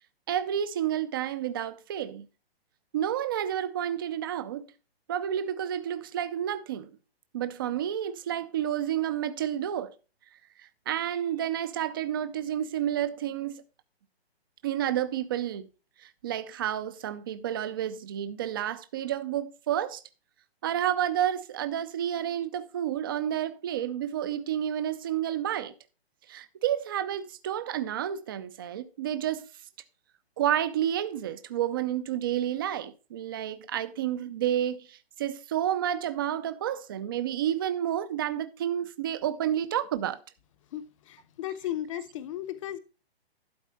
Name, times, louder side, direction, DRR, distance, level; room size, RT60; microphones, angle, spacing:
voice 1, 0.3-2.3 2.9-4.7 5.1-6.9 7.3-9.9 10.6-13.6 14.6-15.7 16.0-20.0 20.6-25.7 26.3-29.4 30.4-40.2, right 10 dB, 20° right, 0.4 m, -30 dB
voice 2, 40.7-42.8, left 12 dB, 30° left, 0.7 m, -35 dB
12.0 x 4.1 x 5.7 m
hypercardioid pair, 155°, 31 cm